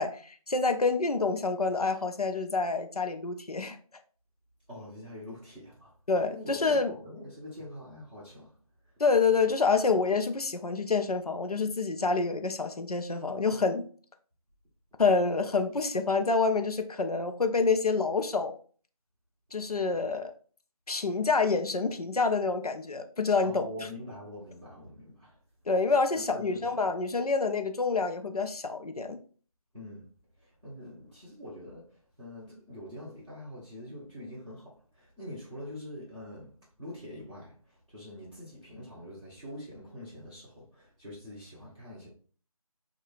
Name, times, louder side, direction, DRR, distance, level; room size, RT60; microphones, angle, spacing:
voice 1, 0.0-3.8 6.1-7.0 9.0-13.8 15.0-18.6 19.5-20.3 20.9-23.6 25.7-29.2, left 4 dB, 85° left, 0.6 m, -27 dB
voice 2, 4.7-5.9 6.3-8.5 8.8-8.9 23.4-25.4 26.1-26.7 29.7-30.0 30.4-36.5 36.8-42.1, left 1 dB, ahead, 0.6 m, -44 dB
3.0 x 2.3 x 3.8 m
figure-of-eight pair, 165°, 19 cm